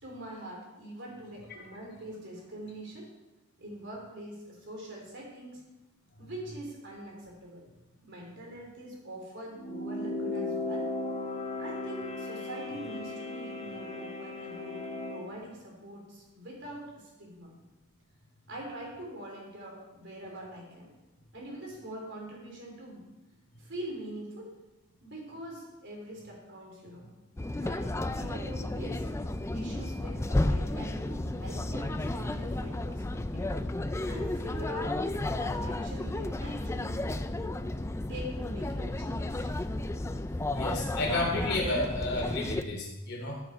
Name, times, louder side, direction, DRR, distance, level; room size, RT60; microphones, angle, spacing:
voice 1, 0.0-3.1 3.6-5.6 6.2-7.7 8.0-10.9 11.6-17.5 18.5-20.9 21.3-23.1 23.6-24.5 25.0-27.1 27.6-29.0 29.5-33.5 34.1-35.0 35.3-37.0 38.1-39.5, right 1 dB, 55° right, -1 dB, 3.4 m, -44 dB
sound 1, 9.5-15.3, left 2 dB, 30° left, 1.1 m, -36 dB
sound 2, 27.4-42.6, left 2 dB, 15° left, 0.3 m, -32 dB
voice 2, 40.5-43.4, left 2 dB, 50° left, -1 dB, 3.2 m, -31 dB
13.5 x 7.1 x 4.5 m, 1.0 s
head